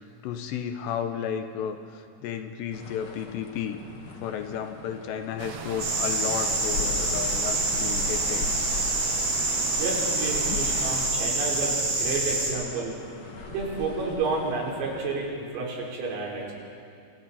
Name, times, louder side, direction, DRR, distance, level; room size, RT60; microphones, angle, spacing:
voice 1, 0.2-3.8 4.2-8.7, left 8 dB, 75° left, 7 dB, 2.7 m, -33 dB
sound 1, 2.7-15.2, left 3 dB, 55° left, 1.5 m, -40 dB
sound 2, 5.4-11.1, right 6 dB, 65° right, 2.6 m, -39 dB
sound 3, 5.8-12.5, right 2 dB, 40° right, 6.1 m, -27 dB
voice 2, 9.7-11.7 12.0-13.0 13.5-16.5, right 3 dB, 85° right, -3 dB, 6.6 m, -30 dB
28.0 x 27.5 x 4.2 m, 2.4 s
omnidirectional pair, 5.7 m